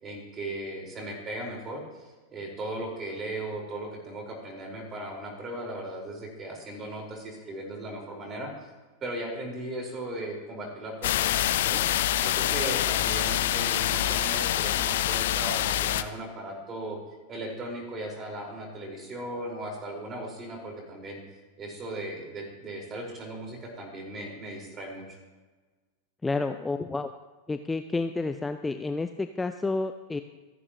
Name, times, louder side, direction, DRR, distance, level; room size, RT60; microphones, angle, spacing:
voice 1, 0.0-2.0 2.3-8.5 9.0-11.8 12.2-17.0 17.3-21.2 21.6-25.2, right 1 dB, 25° right, 1 dB, 5.2 m, -37 dB
sound 1, 11.0-16.0, left 12 dB, 55° left, 0.7 m, -26 dB
voice 2, 26.2-27.1 27.5-30.2, left 3 dB, 10° left, 8 dB, 0.6 m, -30 dB
27.5 x 11.0 x 3.2 m, 1.3 s
figure-of-eight pair, 90°, 0 cm